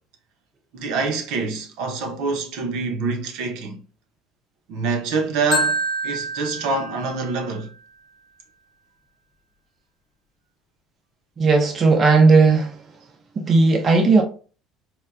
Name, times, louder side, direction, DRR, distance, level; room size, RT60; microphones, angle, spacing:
voice 1, 0.7-3.8 4.7-7.7, right 4 dB, 70° right, 0.7 m, -26 dB
Marimba xylophone, 5.5-7.6, right 1 dB, 40° left, 0.7 m, -26 dB
voice 2, 11.4-12.8 13.4-14.2, right 3 dB, 25° right, 0.4 m, -15 dB
4.3 x 2.2 x 2.4 m
cardioid pair, 170°, 0 cm